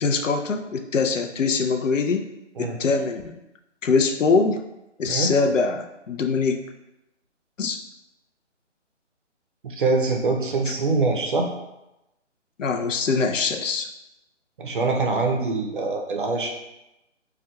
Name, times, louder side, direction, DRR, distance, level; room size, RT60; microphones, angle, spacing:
voice 1, 0.0-2.2 2.6-3.4 3.8-4.6 5.0-6.6 7.6-7.8 12.6-13.9, left 4 dB, 90° left, 4 dB, 0.5 m, -23 dB
voice 2, 9.6-11.5 14.6-16.5, right 3 dB, 45° right, 2 dB, 0.5 m, -24 dB
4.3 x 2.3 x 2.2 m, 0.93 s
figure-of-eight pair, 150°, 37 cm